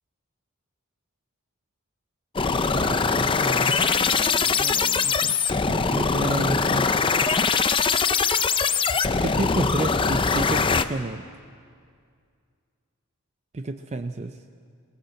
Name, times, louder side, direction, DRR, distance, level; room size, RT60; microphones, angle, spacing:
sound 1, 2.4-10.8, left 5 dB, 25° left, 0.5 m, -22 dB
voice 1, 2.7-5.4 5.7-6.9 9.2-11.2 13.5-14.4, right 2 dB, 30° right, 8 dB, 0.5 m, -31 dB
19.0 x 18.5 x 7.7 m, 2.2 s
head